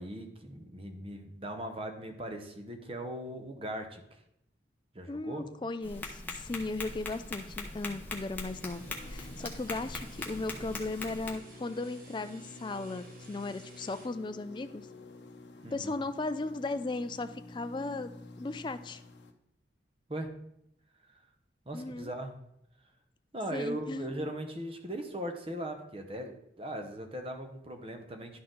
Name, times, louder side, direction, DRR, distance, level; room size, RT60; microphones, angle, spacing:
voice 1, 0.0-4.2 4.9-5.4 15.6-15.9 20.1-20.3 21.7-22.4 23.3-28.4, right 1 dB, 30° right, 5 dB, 0.9 m, -39 dB
voice 2, 5.1-14.9 15.7-18.1 18.4-19.0 21.7-22.1 23.5-24.2, left 2 dB, 25° left, 10 dB, 0.4 m, -36 dB
Tap, 5.8-11.3, left 2 dB, 10° left, 0.9 m, -41 dB
sound 1, 8.5-14.2, right 3 dB, 50° right, 1.1 m, -57 dB
sound 2, 8.7-19.3, left 2 dB, 70° left, 0.7 m, -50 dB
11.0 x 4.3 x 3.8 m, 0.75 s
head